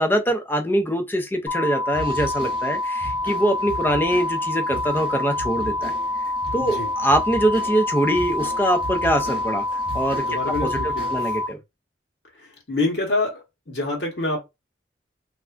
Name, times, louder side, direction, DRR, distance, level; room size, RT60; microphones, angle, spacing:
voice 1, 0.0-6.2 6.5-9.7 9.9-10.2 10.6-11.6, equal, 10° left, 0.4 m, -23 dB
sound 1, 1.5-11.5, left 2 dB, 80° left, 0.6 m, -27 dB
sound 2, 1.9-11.5, right 1 dB, 30° right, 0.6 m, -37 dB
voice 2, 6.6-6.9 10.1-11.3 12.3-14.4, left 2 dB, 65° left, 1.0 m, -27 dB
3.2 x 2.4 x 2.4 m
head